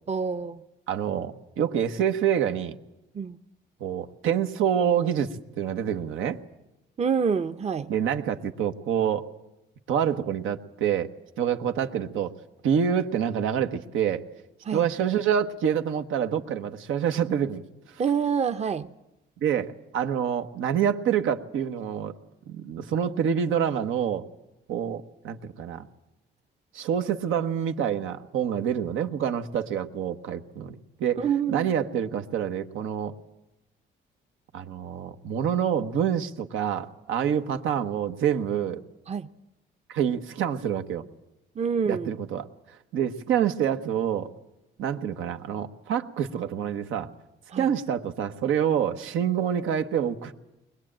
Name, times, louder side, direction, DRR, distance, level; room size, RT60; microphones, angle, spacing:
voice 1, 0.1-0.6 3.1-3.4 7.0-7.9 14.7-14.8 18.0-18.9 31.2-31.7 39.1-39.3 41.6-42.1 47.5-47.7, right 6 dB, 35° right, 0.8 m, -27 dB
voice 2, 0.9-2.8 3.8-6.4 7.9-9.3 9.9-11.1 11.4-12.3 12.6-14.3 14.7-18.0 19.4-22.2 22.5-24.2 24.7-25.9 26.7-33.1 34.5-38.8 39.9-41.0 41.8-44.3 44.8-47.1 47.6-50.3, right 8 dB, 85° right, 1.2 m, -27 dB
21.5 x 21.0 x 8.8 m
cardioid pair, 90°, 20 cm